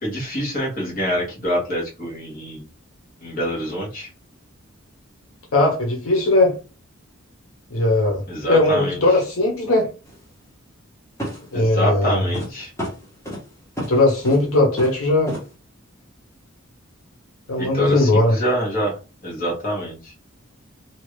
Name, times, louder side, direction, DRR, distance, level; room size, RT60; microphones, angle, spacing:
voice 1, 0.0-2.7 3.2-4.1 8.3-9.0 11.5-12.7 17.6-18.9 19.2-20.1, equal, 45° left, 1.3 m, -26 dB
voice 2, 5.5-6.5 7.7-8.2 8.5-9.9 11.5-12.2 13.9-15.3 17.5-18.4, left 2 dB, 85° left, 1.0 m, -18 dB
sound 1, 10.0-10.2 11.2-11.6 12.3-12.5 12.8-13.4 13.8-13.9 14.2-14.5 14.8-15.0 15.3-15.4, equal, 15° left, 1.1 m, -30 dB
2.9 x 2.4 x 3.1 m
head